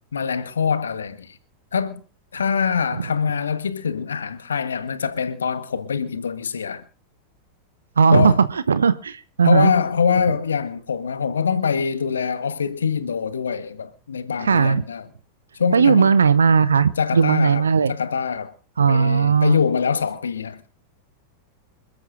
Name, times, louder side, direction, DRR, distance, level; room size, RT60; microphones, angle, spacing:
voice 1, 0.1-1.4 1.7-2.0 2.3-6.8 8.1-8.4 9.4-15.1 15.5-16.1 17.0-18.5 18.9-20.6, left 6 dB, 70° left, 1.3 m, -24 dB
voice 2, 8.0-9.7 14.4-14.8 15.7-17.9 18.8-19.6, right 6 dB, 70° right, 0.7 m, -17 dB
27.5 x 13.0 x 2.6 m
figure-of-eight pair, 90°, 0 cm